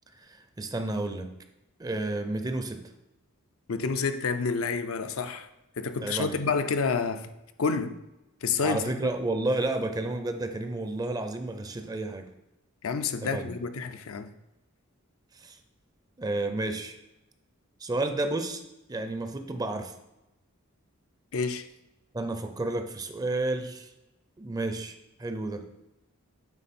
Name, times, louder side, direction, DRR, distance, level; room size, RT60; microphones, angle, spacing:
voice 1, 0.2-1.3 1.8-2.8 6.0-6.4 8.6-12.3 13.2-13.5 15.4-15.6 16.2-17.0 17.8-18.6 18.9-19.9 22.1-23.9 24.4-25.6, right 2 dB, 15° right, 0.5 m, -31 dB
voice 2, 3.7-5.5 5.8-7.3 7.6-8.0 8.4-8.9 12.8-14.3 21.3-21.7, left 5 dB, 70° left, 0.5 m, -29 dB
9.0 x 3.8 x 4.3 m
head